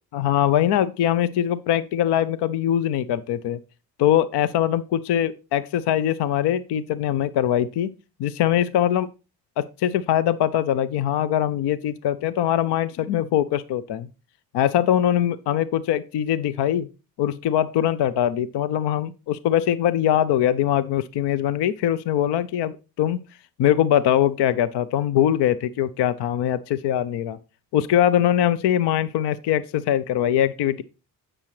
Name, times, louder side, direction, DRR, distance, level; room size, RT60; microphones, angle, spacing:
voice 1, 0.1-3.6 4.0-7.9 8.2-9.1 9.6-14.1 14.5-16.9 17.2-23.2 23.6-27.4 27.7-30.8, left 11 dB, 55° left, 15 dB, 0.7 m, -22 dB
10.0 x 7.7 x 3.2 m, 0.31 s
hypercardioid pair, 55°, 48 cm